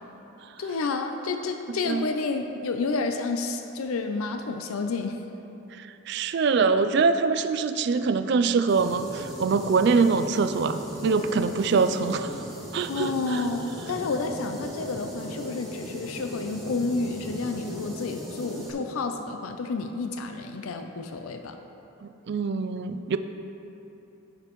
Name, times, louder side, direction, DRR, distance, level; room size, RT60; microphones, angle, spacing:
voice 1, 0.6-5.2 12.9-21.6, left 3 dB, 85° left, 6 dB, 0.5 m, -30 dB
voice 2, 6.1-12.3 12.7-13.4 22.0-23.2, right 4 dB, 55° right, 10 dB, 0.3 m, -24 dB
sound 1, 8.7-18.7, equal, ahead, 1.4 m, -38 dB
15.5 x 5.2 x 3.0 m, 3.0 s
head